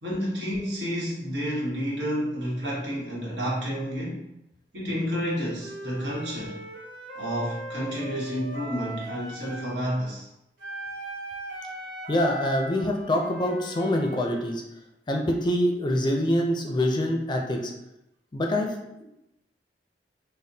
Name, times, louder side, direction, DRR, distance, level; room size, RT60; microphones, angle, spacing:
voice 1, 0.0-4.3 4.7-6.6 7.1-10.3, equal, 80° right, -6 dB, 1.3 m, -30 dB
Wind instrument woodwind instrument, 5.6-9.8 10.6-14.5, right 1 dB, 55° right, 1.4 m, -39 dB
voice 2, 12.1-14.6 15.1-17.7 18.3-18.7, left 1 dB, 25° left, 1 dB, 0.5 m, -25 dB
5.2 x 2.1 x 2.7 m, 0.85 s
head